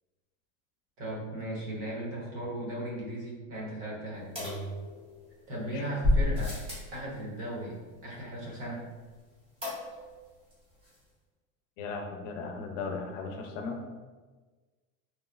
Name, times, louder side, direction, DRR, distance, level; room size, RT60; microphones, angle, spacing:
voice 1, 1.0-4.3 5.5-6.6 6.9-7.7 8.0-8.8, right 1 dB, 60° right, -4 dB, 1.0 m, -36 dB
sound 1, 4.4-5.3 6.0-7.0 9.6-10.2 10.5-10.6 10.8-10.9, left 1 dB, 15° right, 0.7 m, -29 dB
voice 2, 11.8-13.8, left 4 dB, 65° left, 3 dB, 0.5 m, -37 dB
2.9 x 2.0 x 2.3 m, 1.3 s
supercardioid pair, 160°, 41 cm